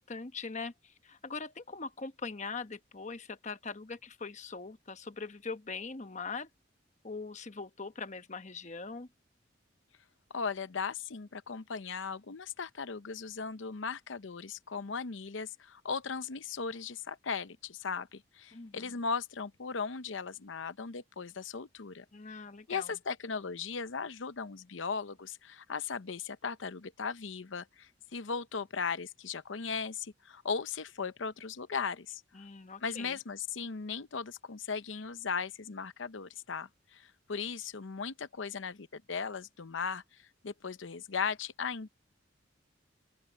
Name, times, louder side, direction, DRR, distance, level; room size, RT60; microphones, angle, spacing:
voice 1, 0.0-6.5 7.0-9.1 18.5-18.9 22.1-23.0 32.3-33.2, left 4 dB, 40° left, 1.0 m, -42 dB
voice 2, 10.3-22.0 22.7-32.2 32.8-40.0 40.4-41.9, left 5 dB, 90° left, 0.8 m, -37 dB
open air
head